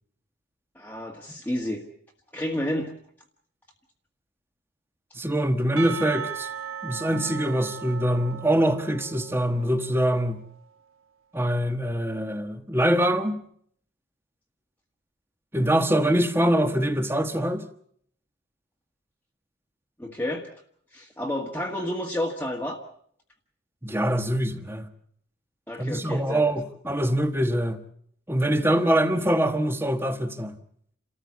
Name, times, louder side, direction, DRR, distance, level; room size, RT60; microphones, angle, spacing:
voice 1, 0.7-1.9 2.3-2.9 20.0-20.5 20.9-22.8 25.7-26.5, left 1 dB, 10° left, 1.5 m, -30 dB
voice 2, 5.1-6.5 6.8-10.4 11.3-13.4 15.5-17.6 23.8-24.9 25.8-27.8 28.3-30.5, right 1 dB, 10° right, 1.4 m, -24 dB
Percussion / Church bell, 5.8-10.3, right 7 dB, 85° right, 1.3 m, -37 dB
28.5 x 14.0 x 8.5 m
head